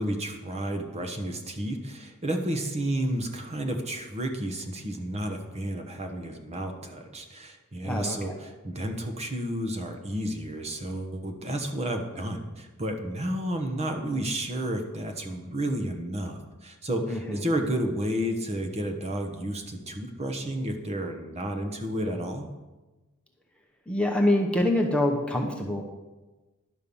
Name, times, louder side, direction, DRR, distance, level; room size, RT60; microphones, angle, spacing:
voice 1, 0.0-22.5, right 1 dB, 30° right, 5 dB, 1.1 m, -31 dB
voice 2, 7.8-8.4 17.1-17.2 23.9-25.8, left 1 dB, 5° left, 1 dB, 0.8 m, -25 dB
11.0 x 5.6 x 7.0 m, 1.2 s
head